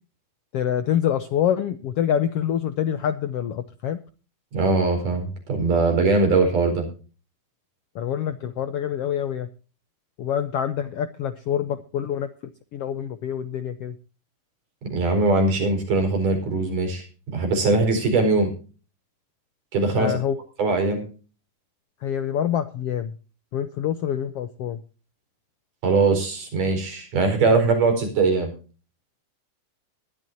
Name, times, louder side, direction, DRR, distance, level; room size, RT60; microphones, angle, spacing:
voice 1, 0.5-4.0 7.9-9.5 10.2-12.3 12.7-13.9 19.9-20.4 22.0-23.1 23.5-24.8, left 9 dB, 75° left, 11 dB, 1.4 m, -26 dB
voice 2, 4.5-6.9 14.8-18.5 19.7-20.2 20.6-21.0 25.8-28.5, right 3 dB, 80° right, 5 dB, 6.2 m, -21 dB
20.0 x 12.5 x 2.7 m, 0.36 s
omnidirectional pair, 3.7 m